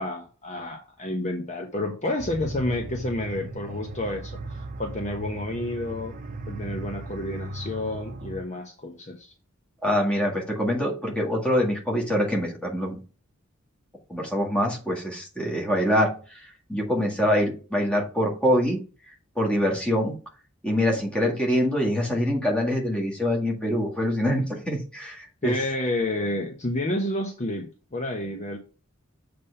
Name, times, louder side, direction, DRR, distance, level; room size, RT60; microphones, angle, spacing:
voice 1, 0.0-6.1 6.5-9.3 25.4-28.6, left 1 dB, 35° left, 3 dB, 0.9 m, -30 dB
sound 1, 2.2-8.4, right 2 dB, 40° right, 0.8 m, -37 dB
voice 2, 9.8-13.0 14.1-16.1 16.7-18.8 19.4-20.1 20.6-25.5, equal, 5° left, -2 dB, 1.8 m, -24 dB
7.4 x 3.4 x 5.6 m, 0.36 s
head